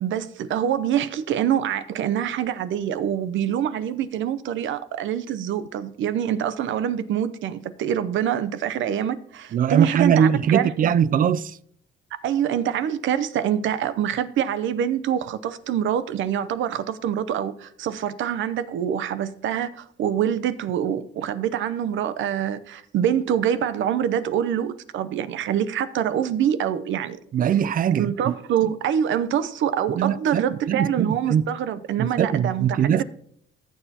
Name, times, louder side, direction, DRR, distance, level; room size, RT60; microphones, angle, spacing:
voice 1, 0.0-10.9 12.2-27.2 28.0-33.0, right 9 dB, 75° right, 0.7 m, -25 dB
voice 2, 9.5-11.6 27.3-28.3 29.9-31.4 32.0-33.0, right 8 dB, 45° right, 0.4 m, -21 dB
15.0 x 7.1 x 2.9 m
cardioid pair, 90°, 20 cm